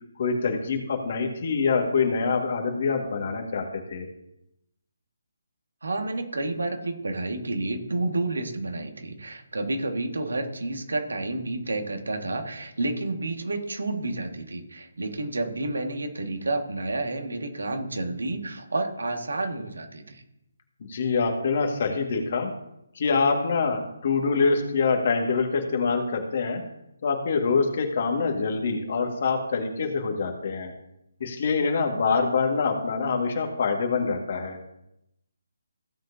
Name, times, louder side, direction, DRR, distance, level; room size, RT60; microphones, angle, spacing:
voice 1, 0.2-4.1 20.8-22.5 23.0-26.6 27.0-30.7 31.2-34.6, left 4 dB, 50° left, 3 dB, 1.9 m, -25 dB
voice 2, 5.8-20.2, right 2 dB, 75° right, 4 dB, 1.8 m, -30 dB
16.0 x 7.7 x 2.8 m, 0.81 s
figure-of-eight pair, 150°, 0 cm